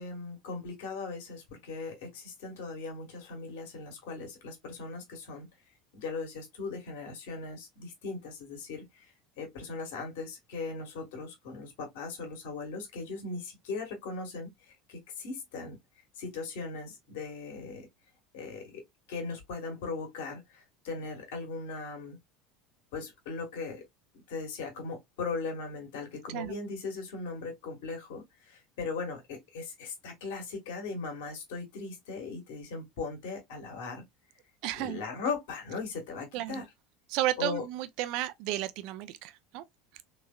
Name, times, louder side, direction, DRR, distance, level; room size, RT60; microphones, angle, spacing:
voice 1, 0.0-5.5 5.9-9.1 9.4-15.8 16.2-17.9 18.3-18.8 19.1-22.2 22.9-23.8 24.3-34.0 34.8-36.6 37.4-37.6, left 4 dB, 65° left, 1.5 m, -38 dB
voice 2, 34.6-35.0 36.3-36.6 37.1-39.6, right 14 dB, 60° right, 0.5 m, -33 dB
3.6 x 3.1 x 2.3 m
figure-of-eight pair, 70°, 0 cm